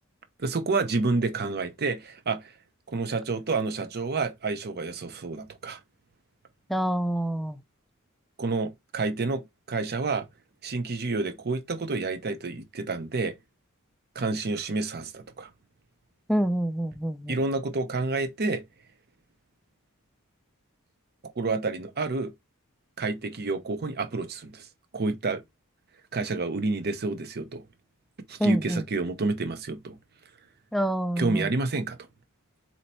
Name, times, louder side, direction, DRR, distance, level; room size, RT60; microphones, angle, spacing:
voice 1, 0.4-2.5 2.9-5.8 8.4-10.3 10.6-13.3 14.1-15.5 17.3-18.6 21.4-22.3 23.0-24.6 24.9-25.4 26.1-27.6 28.3-30.0 31.2-32.0, right 3 dB, 45° right, 0.7 m, -29 dB
voice 2, 6.7-7.6 16.3-17.4 28.4-28.8 30.7-31.5, right 1 dB, ahead, 0.4 m, -27 dB
4.3 x 2.9 x 4.2 m
head